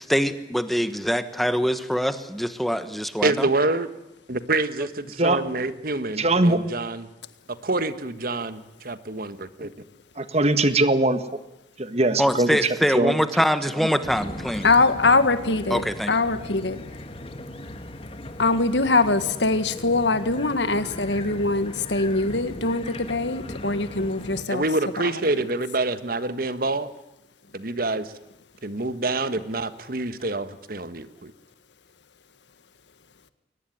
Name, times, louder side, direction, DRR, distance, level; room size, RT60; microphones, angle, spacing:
voice 1, 0.0-3.3 12.2-14.7 15.7-16.1, equal, ahead, 11 dB, 1.2 m, -24 dB
voice 2, 3.2-3.9 4.3-7.1 7.5-9.7 24.5-26.9 27.5-28.1 28.6-31.3, right 2 dB, 55° right, 12 dB, 1.5 m, -27 dB
voice 3, 6.1-6.6 10.2-11.2 11.8-13.1 13.7-13.9, right 2 dB, 35° right, 10 dB, 1.6 m, -21 dB
sound 1, 14.0-24.4, left 1 dB, 30° left, 1.9 m, -38 dB
voice 4, 14.6-16.8 18.4-24.6 25.0-25.3, left 3 dB, 80° left, 11 dB, 1.8 m, -23 dB
22.5 x 20.0 x 9.3 m, 0.91 s
head